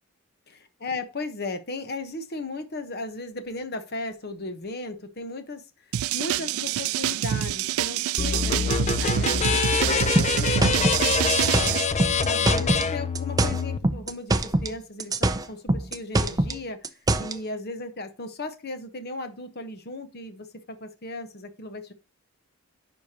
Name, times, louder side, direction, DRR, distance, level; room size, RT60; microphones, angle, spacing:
voice 1, 0.8-16.9 17.2-21.9, left 2 dB, 50° left, 1.0 m, -36 dB
sound 1, 5.9-11.8, right 11 dB, 75° right, 0.3 m, -26 dB
sound 2, 8.2-13.8, left 5 dB, 30° left, 0.5 m, -25 dB
sound 3, 10.2-12.9 13.2-14.7 15.0-17.4, right 2 dB, 15° right, 0.5 m, -24 dB
9.9 x 5.1 x 2.8 m
head